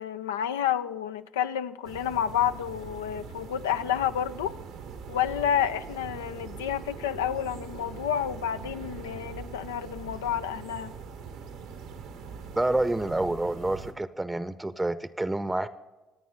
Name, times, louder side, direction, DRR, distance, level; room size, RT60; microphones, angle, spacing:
voice 1, 0.0-4.5 5.1-10.9, left 9 dB, 85° left, 0.4 m, -30 dB
sound 1, 1.8-13.9, right 6 dB, 80° right, 1.3 m, -42 dB
voice 2, 12.6-15.7, right 2 dB, 15° right, 0.7 m, -28 dB
25.5 x 9.3 x 3.9 m
hypercardioid pair, 55°, 0 cm